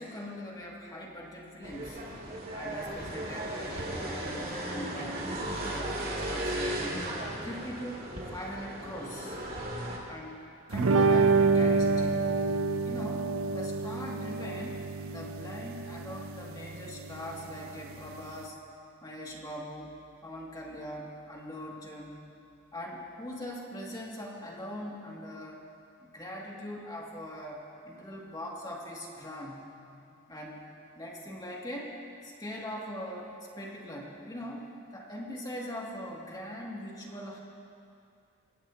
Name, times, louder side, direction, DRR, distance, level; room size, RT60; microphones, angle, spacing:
voice 1, 0.0-2.1 2.5-7.1 7.4-9.4 10.1-12.2 12.8-14.8 15.1-18.6 19.0-22.2 22.7-25.6 26.0-29.7 30.3-30.6 31.0-32.0 32.2-37.4, equal, 20° left, -3 dB, 2.3 m, -41 dB
sound 1, 1.6-10.0, right 1 dB, 45° right, 2.6 m, -36 dB
sound 2, 10.7-18.4, right 4 dB, 75° right, 0.5 m, -28 dB
23.5 x 16.5 x 2.9 m, 2.5 s
head